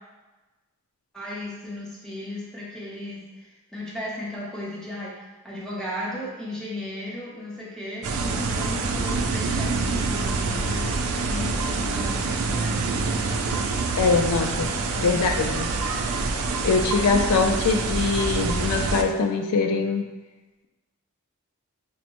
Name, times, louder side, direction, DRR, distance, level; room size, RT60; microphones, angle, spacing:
voice 1, 1.1-10.9 11.3-13.0 15.1-15.2, left 1 dB, ahead, -6 dB, 0.7 m, -35 dB
sound 1, 8.0-19.0, right 3 dB, 75° right, 0.4 m, -26 dB
voice 2, 14.0-15.7 16.6-20.1, left 4 dB, 90° left, 5 dB, 0.4 m, -23 dB
6.2 x 2.1 x 2.9 m, 1.1 s
head